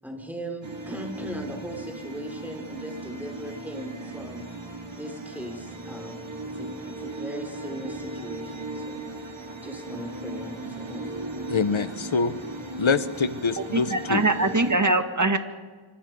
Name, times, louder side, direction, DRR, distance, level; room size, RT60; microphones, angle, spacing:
voice 1, 0.0-4.5 5.0-9.3 9.6-11.1, right 1 dB, 5° right, 2 dB, 5.6 m, -38 dB
sound 1, 0.6-14.8, right 2 dB, 65° right, 2.9 m, -37 dB
voice 2, 11.5-12.4 12.8-14.2, left 5 dB, 75° left, 13 dB, 1.1 m, -25 dB
voice 3, 13.6-15.4, right 2 dB, 35° right, 7 dB, 1.9 m, -23 dB
26.5 x 24.5 x 5.4 m, 1.4 s
wide cardioid pair, 50°, 48 cm